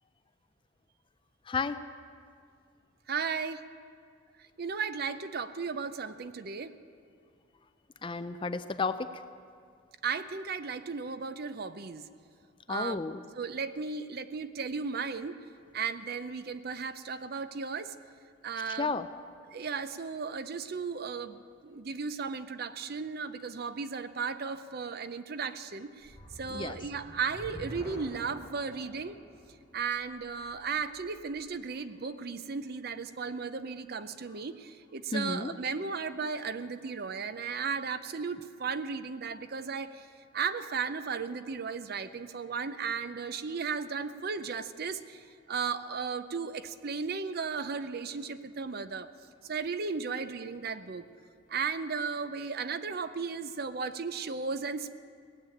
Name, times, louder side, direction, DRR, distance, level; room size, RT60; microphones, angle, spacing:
voice 1, 3.1-3.6 4.6-6.7 10.0-12.1 12.7-13.0 13.4-15.4 15.7-17.9 18.4-18.9 19.5-29.2 29.7-40.1 40.3-45.2 45.5-49.1 49.4-51.1 51.5-55.0, right 5 dB, 50° right, 12 dB, 0.6 m, -35 dB
voice 2, 8.0-9.2 12.7-13.2 18.7-19.1 26.5-26.8 35.1-35.6, left 4 dB, 25° left, 11 dB, 0.4 m, -32 dB
sound 1, 26.0-31.3, equal, 10° left, 3.4 m, -48 dB
18.0 x 7.5 x 8.8 m, 2.2 s
head